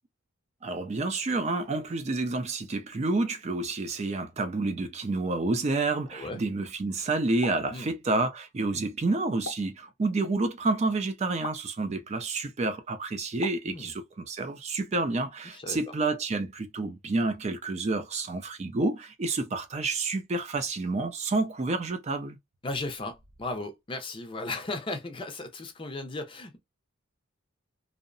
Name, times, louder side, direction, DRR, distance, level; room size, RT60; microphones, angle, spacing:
voice 1, 0.6-22.4, right 3 dB, 30° right, 0.4 m, -29 dB
voice 2, 6.1-6.4 7.7-7.9 13.6-13.9 15.5-15.8 22.6-26.6, left 2 dB, 25° left, 0.5 m, -36 dB
sound 1, 7.4-7.7 9.5-9.8 11.4-11.7 13.4-13.7, left 4 dB, 85° left, 0.6 m, -39 dB
2.7 x 2.0 x 2.5 m
head